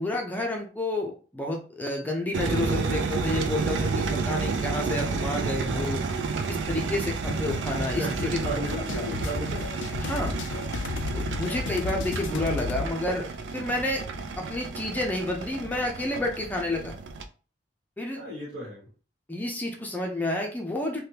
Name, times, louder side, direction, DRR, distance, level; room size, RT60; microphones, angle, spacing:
voice 1, 0.0-6.0 6.5-8.4 8.9-9.0 10.0-10.3 11.1-13.3 13.5-14.0 14.4-16.9 18.0-18.2 19.3-21.0, left 1 dB, 10° left, 1 dB, 0.5 m, -30 dB
sound 1, 2.3-17.2, right 4 dB, 85° right, 0.4 m, -31 dB
sound 2, 7.3-12.9, left 4 dB, 75° left, 0.3 m, -34 dB
voice 2, 8.0-9.6 18.1-18.9, equal, 60° right, -6 dB, 1.3 m, -34 dB
3.4 x 2.2 x 2.8 m, 0.37 s
head